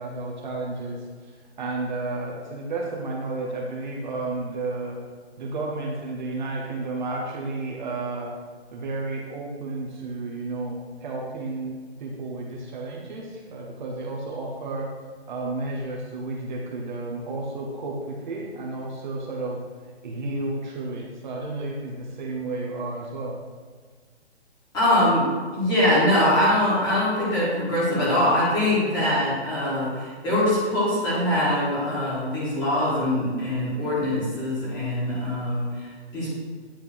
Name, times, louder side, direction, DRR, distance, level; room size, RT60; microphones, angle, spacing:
voice 1, 0.0-5.0 5.4-8.3 8.7-14.9 15.3-19.6 20.0-23.4, right 2 dB, 45° right, -2 dB, 1.0 m, -32 dB
voice 2, 24.7-25.3 25.5-36.3, left 1 dB, 15° left, -8 dB, 1.9 m, -23 dB
8.9 x 3.5 x 4.5 m, 1.5 s
hypercardioid pair, 160°, 33 cm